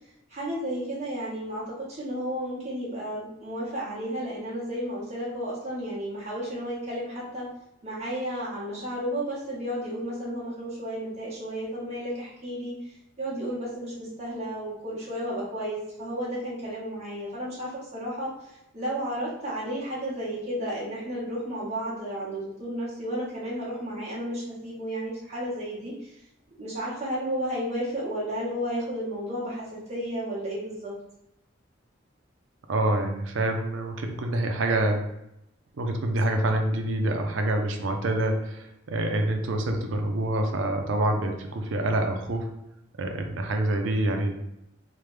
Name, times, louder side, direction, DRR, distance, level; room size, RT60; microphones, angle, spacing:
voice 1, 0.3-7.4 7.8-26.2 26.5-30.9, equal, 35° right, -7 dB, 1.3 m, -33 dB
voice 2, 32.7-35.0 35.8-42.5 43.0-44.4, right 1 dB, 75° right, 4 dB, 0.5 m, -26 dB
3.2 x 2.1 x 3.2 m, 0.84 s
head